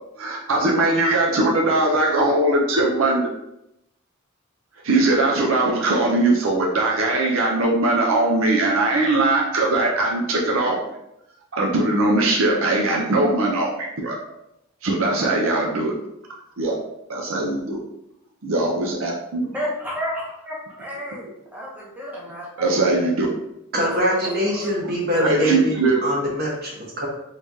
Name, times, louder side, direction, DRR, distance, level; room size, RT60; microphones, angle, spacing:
voice 1, 0.2-3.3 4.8-10.8 11.5-14.2 14.8-15.9 16.6-16.8 17.1-17.8 18.4-19.5 22.6-23.3 25.2-26.0, right 2 dB, 70° right, -1 dB, 0.5 m, -20 dB
voice 2, 19.5-23.0 23.8-24.9, equal, 10° right, -5 dB, 0.8 m, -32 dB
voice 3, 23.7-25.8 26.0-27.1, equal, 45° right, -4 dB, 1.2 m, -23 dB
3.5 x 3.2 x 2.7 m, 0.84 s
head